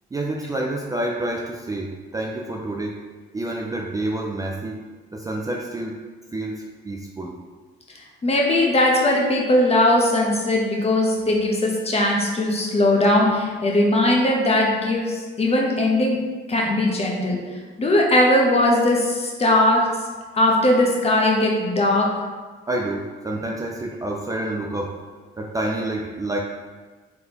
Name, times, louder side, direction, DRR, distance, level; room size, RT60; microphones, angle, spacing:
voice 1, 0.1-3.0 3.3-4.8 5.1-6.0 6.3-7.4 22.7-25.0 25.4-26.4, right 1 dB, 20° right, -1 dB, 0.4 m, -28 dB
voice 2, 8.2-16.2 16.5-17.4 17.8-19.9 20.3-22.2, left 1 dB, 30° left, -1 dB, 0.9 m, -19 dB
3.8 x 3.4 x 2.9 m, 1.4 s
cardioid pair, 90°, 20 cm